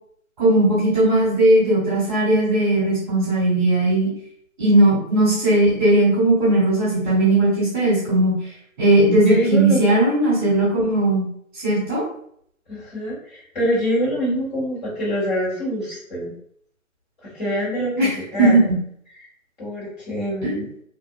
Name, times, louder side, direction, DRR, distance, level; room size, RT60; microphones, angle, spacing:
voice 1, 0.4-4.1 4.6-8.3 8.8-11.2 11.6-12.0 18.0-18.1 18.4-18.6 20.4-20.5, right 1 dB, 35° right, -7 dB, 1.1 m, -17 dB
voice 2, 9.2-10.0 12.7-16.3 17.2-18.5 19.6-20.7, equal, 30° left, -9 dB, 1.5 m, -25 dB
2.6 x 2.2 x 2.3 m, 0.66 s
figure-of-eight pair, 155°, 42 cm